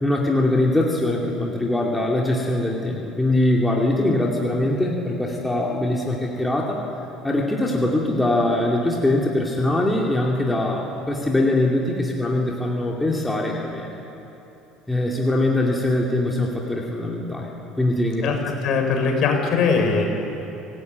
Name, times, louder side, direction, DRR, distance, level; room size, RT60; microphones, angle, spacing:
voice 1, 0.0-6.8 7.2-13.9 14.9-17.5 17.8-18.4, left 1 dB, 5° left, -2 dB, 2.6 m, -22 dB
voice 2, 18.2-20.0, left 5 dB, 50° left, 3 dB, 5.4 m, -21 dB
27.0 x 17.5 x 9.4 m, 3.0 s
cardioid pair, 145°, 0 cm